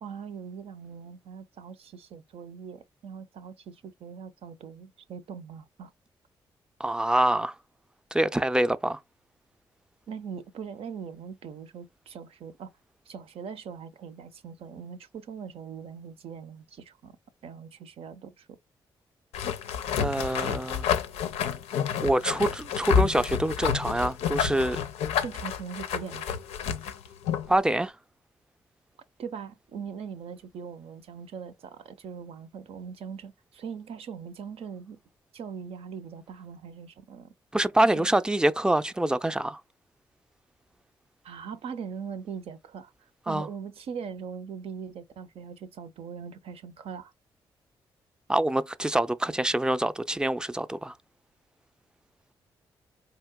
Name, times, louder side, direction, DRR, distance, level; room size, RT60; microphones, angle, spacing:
voice 1, 0.0-5.9 10.1-12.7 13.1-17.1 17.4-18.6 25.2-26.3 29.2-35.0 35.3-37.3 37.9-38.1 41.2-42.9 43.3-47.1, right 6 dB, 65° right, 0.6 m, -41 dB
voice 2, 6.8-7.5 8.1-9.0 20.0-20.9 22.0-24.9 27.5-27.9 37.5-39.6 43.3-43.5 48.3-51.0, right 1 dB, 5° right, 0.5 m, -25 dB
sound 1, 19.3-27.6, left 8 dB, 85° left, 0.5 m, -29 dB
4.3 x 2.8 x 2.2 m
supercardioid pair, 50°, 11 cm